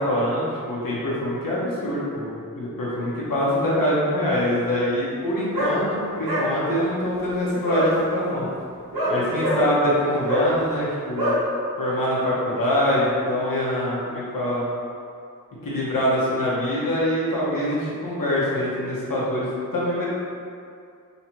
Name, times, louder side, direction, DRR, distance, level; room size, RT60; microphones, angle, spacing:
voice 1, 0.0-8.5 9.0-11.3 11.8-14.6 15.6-20.1, left 1 dB, 70° left, -8 dB, 1.0 m, -24 dB
sound 1, 5.5-5.7 6.2-6.5 7.7-7.9 8.9-9.6 10.3-10.5 11.2-11.4, equal, 85° right, 1.0 m, -23 dB
4.4 x 3.1 x 2.9 m, 2.4 s
wide cardioid pair, 75°, 34 cm